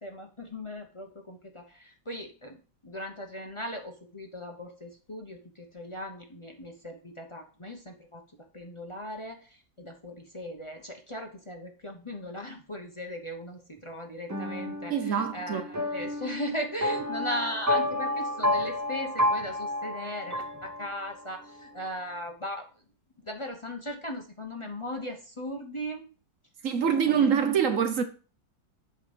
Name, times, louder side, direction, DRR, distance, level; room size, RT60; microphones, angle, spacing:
voice 1, 0.0-8.2 8.5-22.7 23.2-26.1 27.0-27.4, equal, 30° left, 0.5 m, -38 dB
sound 1, 14.3-21.3, left 1 dB, 20° right, 0.4 m, -30 dB
voice 2, 14.9-15.6 26.6-28.0, right 7 dB, 55° right, 1.0 m, -25 dB
7.8 x 5.1 x 5.1 m
omnidirectional pair, 2.0 m